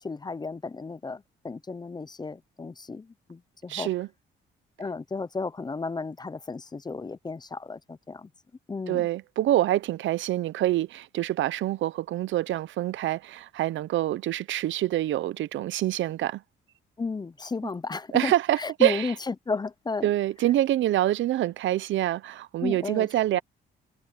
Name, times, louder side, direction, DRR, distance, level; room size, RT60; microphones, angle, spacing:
voice 1, 0.0-3.9 4.8-8.3 8.7-9.1 17.0-20.1 22.6-23.1, left 4 dB, 20° left, 0.6 m, -33 dB
voice 2, 3.7-4.1 8.9-16.4 18.1-19.1 20.0-23.4, right 14 dB, 75° right, 0.7 m, -26 dB
cardioid pair, 90°, 20 cm